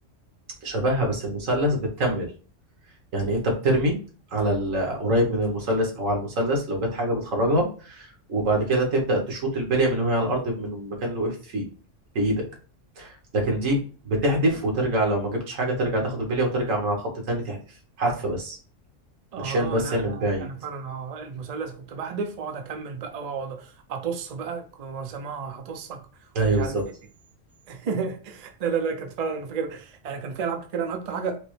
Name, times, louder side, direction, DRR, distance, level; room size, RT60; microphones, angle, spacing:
voice 1, 0.6-2.3 3.1-4.0 4.3-11.7 12.1-12.5 13.0-13.8 14.0-17.6 18.0-18.6 19.4-20.5 26.3-26.8, right 1 dB, 85° right, 1.6 m, -25 dB
voice 2, 19.3-26.0 26.5-26.8 27.7-31.4, right 5 dB, 50° right, 0.5 m, -32 dB
5.1 x 2.1 x 3.1 m
omnidirectional pair, 1.3 m